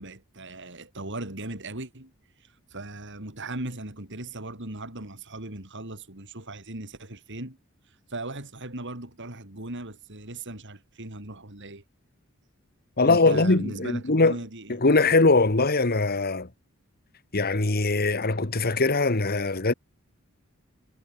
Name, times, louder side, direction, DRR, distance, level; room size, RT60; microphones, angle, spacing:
voice 1, 0.0-2.1 2.4-7.6 7.9-11.8 13.0-14.8, right 2 dB, 55° right, 5.1 m, -38 dB
voice 2, 13.0-14.3 14.8-16.5 17.3-19.7, left 3 dB, 45° left, 1.6 m, -21 dB
head